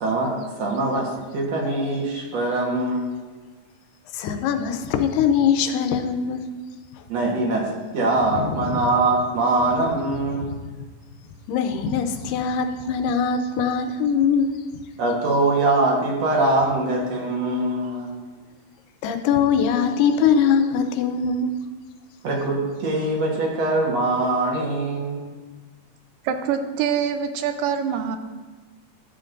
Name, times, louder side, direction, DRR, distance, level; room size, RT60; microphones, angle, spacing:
voice 1, 0.0-3.0 7.1-7.7 7.9-10.5 15.0-18.2 22.2-25.2, right 2 dB, 60° right, -2 dB, 2.3 m, -23 dB
voice 2, 4.1-6.4 8.4-8.9 11.5-14.5 19.0-21.5, left 6 dB, 90° left, 7 dB, 2.3 m, -22 dB
voice 3, 26.3-28.2, right 7 dB, 85° right, 8 dB, 2.2 m, -24 dB
12.0 x 7.8 x 2.6 m, 1.3 s
omnidirectional pair, 3.9 m